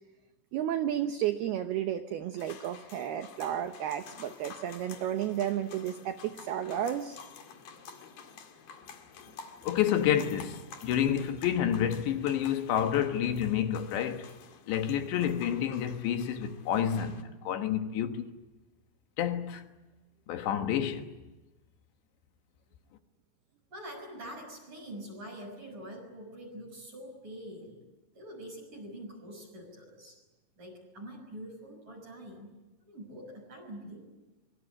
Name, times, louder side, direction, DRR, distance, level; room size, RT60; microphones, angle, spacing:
voice 1, 0.5-7.2, right 10 dB, 85° right, 2.2 m, -32 dB
sound 1, 2.4-17.2, left 6 dB, 55° left, 3.2 m, -50 dB
voice 2, 9.6-14.3 14.7-18.3 19.2-19.6 20.3-21.1, left 9 dB, 70° left, 3.3 m, -29 dB
voice 3, 23.7-27.8 28.1-30.2 30.6-32.5 32.8-34.0, right 1 dB, 40° right, 7.9 m, -45 dB
25.5 x 23.5 x 8.8 m
omnidirectional pair, 5.9 m